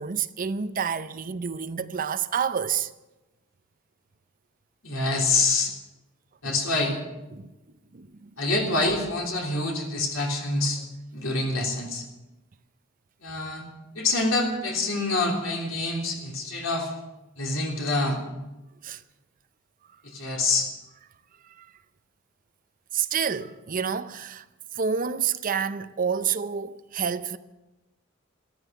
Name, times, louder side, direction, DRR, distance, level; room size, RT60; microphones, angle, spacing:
voice 1, 0.0-2.9 6.4-6.5 7.3-7.5 7.9-8.3 18.8-19.0 21.6-21.7 22.9-24.4 24.7-27.4, right 7 dB, 45° right, 0.6 m, -28 dB
voice 2, 4.8-5.7 6.4-7.0 8.4-10.8 11.1-12.0 13.2-13.7 13.9-16.9 17.4-18.2 20.0-20.7, left 2 dB, 80° left, 3.4 m, -26 dB
13.5 x 13.5 x 6.7 m
head